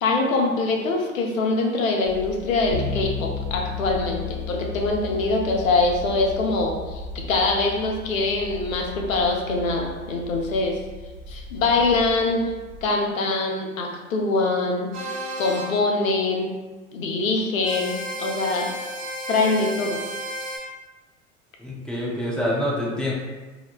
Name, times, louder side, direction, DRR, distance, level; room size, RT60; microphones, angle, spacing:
voice 1, 0.0-10.8 11.3-12.4 12.8-14.9 15.4-16.5 16.9-18.7 19.3-20.0, left 3 dB, 85° left, 1 dB, 0.6 m, -23 dB
sound 1, 2.0-12.9, left 1 dB, 30° left, 1.0 m, -40 dB
Bass guitar, 2.7-12.4, left 5 dB, 55° right, 1.4 m, -36 dB
sound 2, 14.9-15.7 17.6-20.6, equal, 30° right, 1.2 m, -32 dB
voice 2, 21.6-23.1, left 1 dB, ahead, -5 dB, 0.4 m, -26 dB
2.9 x 2.1 x 2.4 m, 1.2 s
hypercardioid pair, 90°, 39 cm